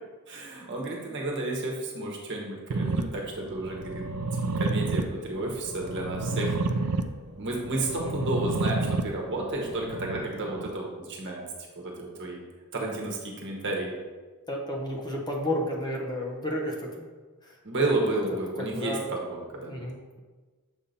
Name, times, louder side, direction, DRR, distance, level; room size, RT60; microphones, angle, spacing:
voice 1, 0.3-4.0 4.6-6.5 7.4-11.4 11.8-12.4 12.7-13.9 17.6-19.7, right 2 dB, 55° right, -1 dB, 1.2 m, -31 dB
sound 1, 2.7-10.7, right 3 dB, 85° right, 0.4 m, -31 dB
voice 2, 4.9-5.3 6.2-6.6 8.0-8.3 14.5-17.1 17.4-17.9 18.6-19.2 19.7-20.2, left 1 dB, 20° left, -1 dB, 0.7 m, -33 dB
6.9 x 2.8 x 5.1 m, 1.3 s
head